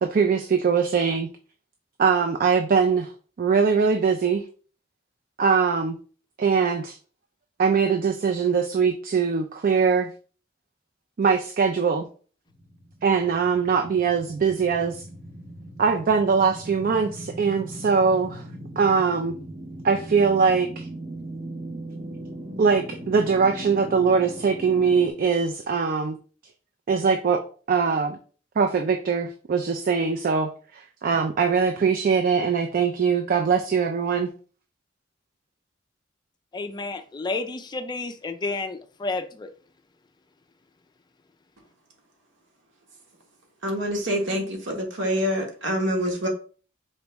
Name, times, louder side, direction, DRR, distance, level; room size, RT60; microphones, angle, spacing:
voice 1, 0.0-1.3 2.0-3.1 3.4-4.4 5.4-6.0 6.4-7.0 7.6-10.1 11.2-12.1 13.0-15.0 15.8-18.5 18.8-19.3 19.8-20.9 22.6-26.2 26.9-27.4 27.7-28.2 28.6-34.3, right 5 dB, 50° right, 0.4 m, -22 dB
sound 1, 12.5-25.1, right 1 dB, 30° right, 0.8 m, -39 dB
voice 2, 36.5-39.5, left 3 dB, 25° left, 0.3 m, -31 dB
voice 3, 43.6-46.3, equal, 70° right, 1.2 m, -26 dB
4.3 x 3.0 x 3.4 m
head